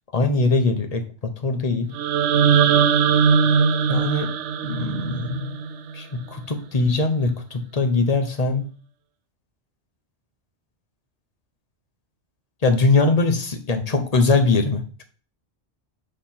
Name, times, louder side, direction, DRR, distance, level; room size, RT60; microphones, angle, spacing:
voice 1, 0.1-1.9 3.9-4.3 4.6-5.5 5.9-8.6 12.6-15.0, left 3 dB, 35° left, 5 dB, 1.0 m, -21 dB
sound 1, 1.9-6.0, right 6 dB, 90° right, 0.9 m, -20 dB
6.7 x 3.2 x 5.7 m, 0.39 s
omnidirectional pair, 1.2 m